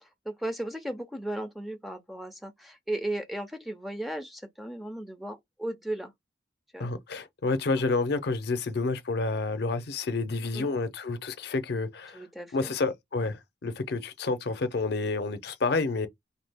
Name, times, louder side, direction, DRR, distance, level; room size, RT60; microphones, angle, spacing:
voice 1, 0.0-6.1 6.7-6.9 10.5-10.7 12.1-12.7, right 1 dB, ahead, 0.4 m, -36 dB
voice 2, 6.8-12.2 12.5-16.1, left 3 dB, 65° left, 0.5 m, -29 dB
2.5 x 2.3 x 3.3 m
head